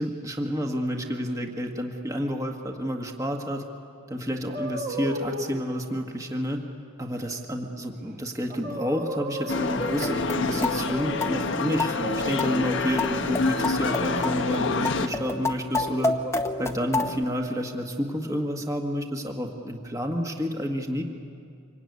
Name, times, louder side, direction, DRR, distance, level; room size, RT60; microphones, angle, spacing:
voice 1, 0.0-3.6 4.1-6.6 7.0-16.2 16.6-21.0, equal, 15° right, 2 dB, 1.5 m, -30 dB
Air Cat Talk, 4.5-5.6 8.1-8.2 8.5-10.2 10.7-11.6 12.0-13.3 13.8-14.9 15.8-16.3, equal, 45° right, 3.3 m, -35 dB
sound 1, 9.5-15.1, left 3 dB, 55° left, 1.2 m, -28 dB
sound 2, 9.8-17.2, left 2 dB, 10° left, 0.9 m, -30 dB
26.5 x 23.5 x 9.5 m, 2.4 s
head